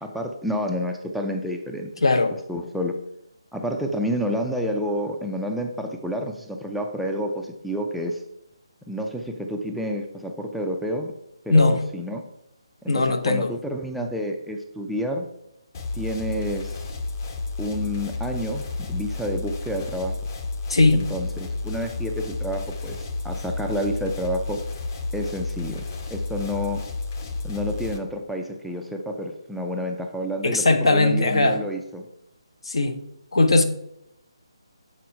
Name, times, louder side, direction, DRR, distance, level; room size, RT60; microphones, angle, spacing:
voice 1, 0.0-1.9 2.5-2.9 3.5-8.2 8.9-11.1 11.5-12.2 12.9-15.3 16.0-16.8 17.6-20.1 20.9-24.6 25.1-25.9 26.1-26.8 27.4-32.1, equal, ahead, 0.4 m, -29 dB
voice 2, 2.0-2.4 11.5-11.8 12.9-13.5 20.7-21.0 30.4-31.6 32.6-33.0 33.3-33.6, left 2 dB, 65° left, 0.9 m, -19 dB
sound 1, 15.7-28.0, left 3 dB, 35° left, 0.9 m, -31 dB
7.5 x 4.2 x 4.7 m
figure-of-eight pair, 145°, 3 cm